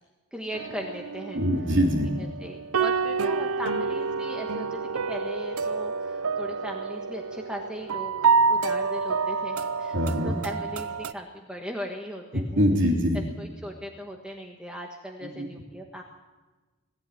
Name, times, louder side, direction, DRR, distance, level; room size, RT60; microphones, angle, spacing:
voice 1, 0.3-1.4 2.2-4.8 5.1-12.4 13.4-16.0, equal, 5° right, 1 dB, 1.5 m, -38 dB
sound 1, 0.5-11.1, right 5 dB, 90° right, 0.6 m, -28 dB
voice 2, 1.3-2.1 9.9-10.3 12.3-13.2 15.2-15.5, equal, 60° right, 1 dB, 3.3 m, -24 dB
21.0 x 14.5 x 9.4 m, 1.2 s
head